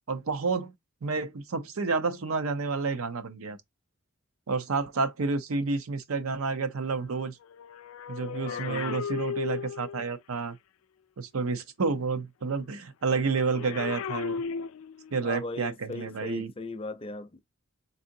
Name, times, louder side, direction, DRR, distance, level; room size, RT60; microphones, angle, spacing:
voice 1, 0.1-0.7 1.0-3.6 4.5-7.4 8.1-10.6 11.2-14.4 15.1-16.5, right 4 dB, 90° right, 0.7 m, -30 dB
sound 1, 7.4-10.2 13.3-15.2 16.1-16.3, left 6 dB, 80° left, 0.3 m, -36 dB
voice 2, 8.4-9.0 15.2-17.4, left 3 dB, 25° left, 0.5 m, -38 dB
4.0 x 3.6 x 2.6 m
head